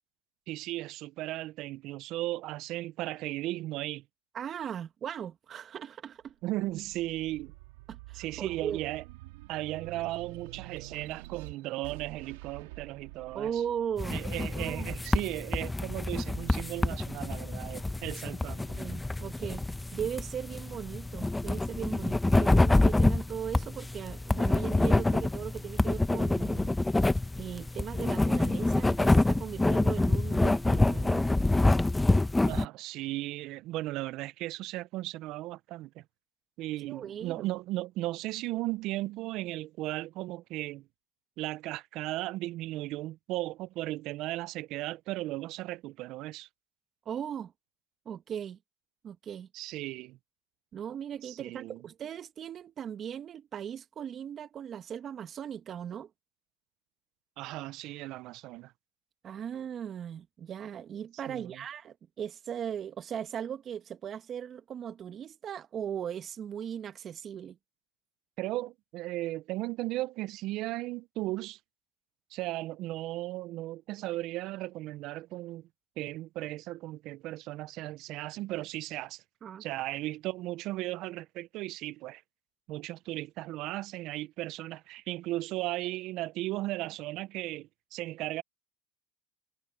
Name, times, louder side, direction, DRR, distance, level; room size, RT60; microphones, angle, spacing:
voice 1, 0.5-4.0 6.4-7.5 8.1-9.0 9.5-13.6 14.1-18.8 32.5-36.0 36.6-40.9 41.4-46.5 49.5-50.2 51.2-51.8 57.4-58.7 61.3-61.6 68.4-71.6 72.3-75.7 76.0-79.2 79.6-82.2 82.7-88.4, right 17 dB, 60° right, 0.7 m, -36 dB
voice 2, 4.3-6.3 7.9-8.8 13.3-14.3 14.6-14.9 18.7-19.6 19.9-26.7 27.4-31.2 36.9-37.5 47.1-47.5 48.1-48.6 49.0-49.5 50.7-56.1 59.2-67.6 79.4-79.6, right 8 dB, 40° right, 1.9 m, -38 dB
sound 1, 6.2-17.0 17.6-18.7, right 20 dB, 80° right, 2.4 m, -49 dB
sound 2, 14.0-32.6, left 2 dB, 10° left, 1.0 m, -27 dB
hypercardioid pair, 90°, 0 cm